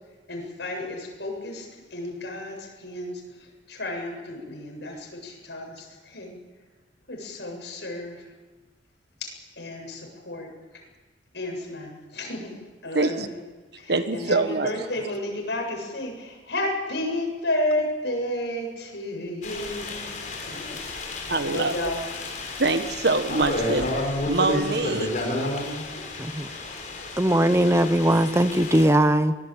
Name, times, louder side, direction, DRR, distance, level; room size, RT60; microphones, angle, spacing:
voice 1, 0.3-6.3 7.1-8.3 9.2-10.5 11.3-12.5 12.8-13.4 13.8-22.1, left 1 dB, 70° left, 1 dB, 7.8 m, -32 dB
voice 2, 12.9-13.3 13.9-14.7 21.3-21.8 22.6-23.9 24.3-25.3, right 3 dB, 65° right, 8 dB, 1.6 m, -24 dB
sound 1, 19.4-28.9, left 1 dB, 45° left, 5.8 m, -31 dB
voice 3, 27.2-29.3, right 1 dB, 15° right, 11 dB, 0.9 m, -20 dB
25.0 x 19.0 x 8.4 m, 1.3 s
head